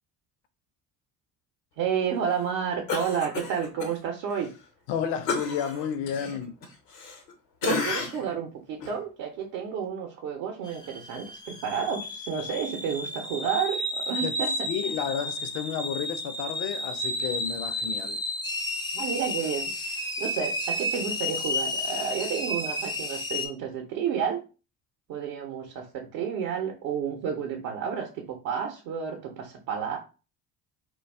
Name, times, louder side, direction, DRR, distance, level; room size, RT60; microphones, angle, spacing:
voice 1, 1.8-4.5 6.1-6.4 7.6-14.9 18.9-24.4 25.1-30.0, right 7 dB, 70° right, 0.7 m, -31 dB
Cough, 2.9-3.9 4.3-4.5 5.3-7.3 7.6-8.3 8.8-9.0, left 4 dB, 80° left, 0.9 m, -32 dB
voice 2, 4.9-6.5 7.7-7.9 14.2-14.3 14.7-18.2, left 8 dB, 60° left, 0.6 m, -31 dB
sound 1, 10.6-23.5, left 1 dB, 10° left, 0.4 m, -32 dB
2.3 x 2.3 x 3.2 m
hypercardioid pair, 55°, 49 cm